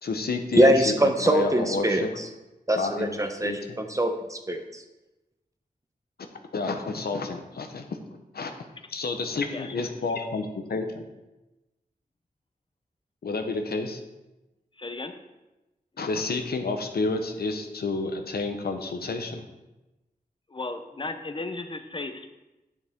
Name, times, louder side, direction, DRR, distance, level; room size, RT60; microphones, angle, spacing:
voice 1, 0.0-2.1 2.8-3.6 6.5-7.9 8.3-8.5 8.9-11.0 13.2-14.0 16.0-19.4, left 3 dB, 85° left, 5 dB, 0.9 m, -30 dB
voice 2, 0.5-2.3 2.7-4.8, right 1 dB, 20° right, 5 dB, 0.9 m, -23 dB
voice 3, 9.4-9.9 14.8-15.2 20.5-22.3, left 3 dB, 35° left, 8 dB, 0.8 m, -35 dB
9.8 x 6.9 x 3.6 m, 1.0 s
wide cardioid pair, 90°, 16 cm